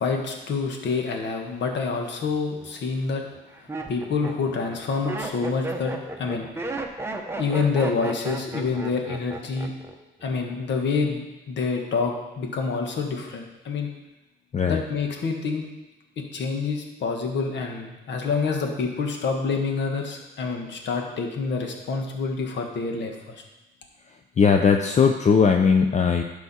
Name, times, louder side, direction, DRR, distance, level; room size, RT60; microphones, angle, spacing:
voice 1, 0.0-3.2 3.9-5.9 6.2-6.5 7.4-9.7 10.2-13.9 14.7-15.7 16.3-23.3, left 4 dB, 65° left, 2 dB, 1.5 m, -27 dB
Laughter, 2.6-2.7 3.3-9.9 10.2-10.7, right 2 dB, 10° right, 1.0 m, -33 dB
voice 2, 24.4-26.2, left 6 dB, 35° left, 4 dB, 0.6 m, -19 dB
11.5 x 4.9 x 4.2 m, 1.0 s
cardioid pair, 90°, 20 cm